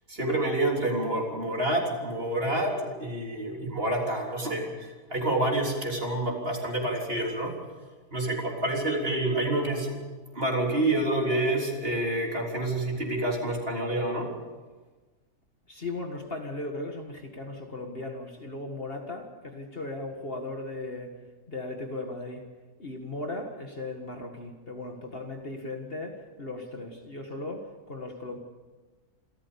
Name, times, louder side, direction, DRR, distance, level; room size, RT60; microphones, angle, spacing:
voice 1, 0.1-7.5 8.1-10.0 10.3-14.3, right 1 dB, 40° right, 0 dB, 3.9 m, -28 dB
voice 2, 15.7-21.2 21.5-22.4 22.8-28.4, left 2 dB, 40° left, 3 dB, 2.0 m, -37 dB
27.5 x 14.0 x 7.0 m, 1.3 s
omnidirectional pair, 1.6 m